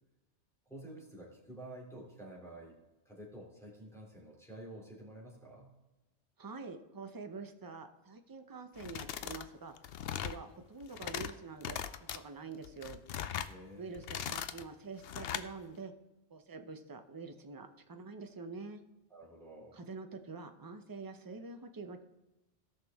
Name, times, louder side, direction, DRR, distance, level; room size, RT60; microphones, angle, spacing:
voice 1, 0.7-2.8 3.0-5.7 13.5-14.0 19.1-19.8, right 1 dB, ahead, -4 dB, 3.1 m, -50 dB
voice 2, 6.4-9.7 10.2-13.0 13.8-15.9 16.3-18.8 19.7-22.0, right 4 dB, 20° right, 6 dB, 0.6 m, -46 dB
sound 1, 8.8-9.5 9.8-10.4 10.8-11.3 11.6-12.2 12.6-13.5 13.9-14.6 15.0-15.5, left 9 dB, 65° left, 0.7 m, -39 dB
18.0 x 6.1 x 3.6 m, 1.0 s
omnidirectional pair, 1.2 m